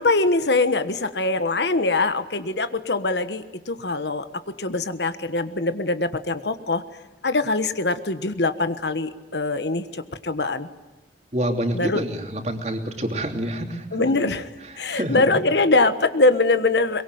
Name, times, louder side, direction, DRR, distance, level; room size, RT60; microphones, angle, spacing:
voice 1, 0.0-6.8 7.2-10.7 11.7-12.0 13.9-14.5 14.8-17.0, left 3 dB, 75° left, 11 dB, 1.4 m, -23 dB
voice 2, 11.3-14.2 14.6-15.2, right 1 dB, 40° right, 4 dB, 3.2 m, -27 dB
23.5 x 22.5 x 9.3 m, 1.1 s
head